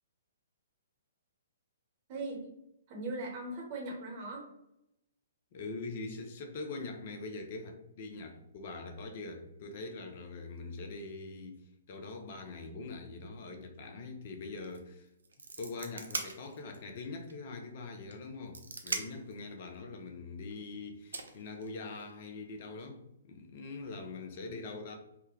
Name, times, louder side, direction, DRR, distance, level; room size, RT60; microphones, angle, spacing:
voice 1, 2.1-2.5 2.9-4.5, right 2 dB, 35° right, 1.0 m, -39 dB
voice 2, 5.5-15.1 15.6-25.0, left 3 dB, 45° left, 0.6 m, -43 dB
sound 1, 14.6-14.8 15.1-16.9 17.3-17.4 18.1-19.3 20.5-20.6 21.1-22.1, right 3 dB, 70° right, 0.5 m, -40 dB
3.4 x 2.1 x 3.0 m
figure-of-eight pair, 120°, 0 cm